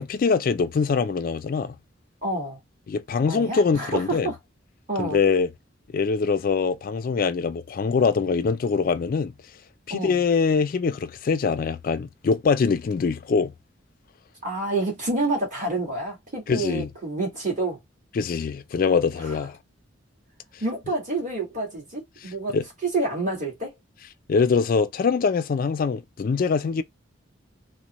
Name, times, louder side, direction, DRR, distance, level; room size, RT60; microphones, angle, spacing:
voice 1, 0.0-1.7 2.9-4.3 5.0-5.5 5.9-9.3 9.9-13.5 16.5-16.9 18.1-19.6 22.2-22.6 24.3-26.8, left 5 dB, 45° left, 0.3 m, -23 dB
voice 2, 2.2-2.6 3.3-4.3 4.9-5.2 9.9-10.2 14.4-17.8 19.2-19.3 20.6-22.6 22.8-23.7, right 2 dB, 40° right, 1.6 m, -28 dB
3.8 x 2.0 x 2.9 m
head